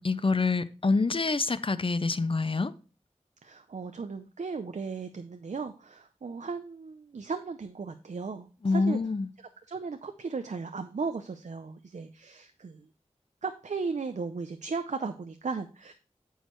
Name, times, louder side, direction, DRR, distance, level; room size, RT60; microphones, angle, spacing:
voice 1, 0.0-2.7 8.6-9.3, left 3 dB, 50° left, 0.6 m, -26 dB
voice 2, 3.4-9.0 9.7-12.9 13.4-15.9, right 4 dB, 85° right, 0.6 m, -36 dB
9.2 x 6.4 x 3.0 m
wide cardioid pair, 65°, 12 cm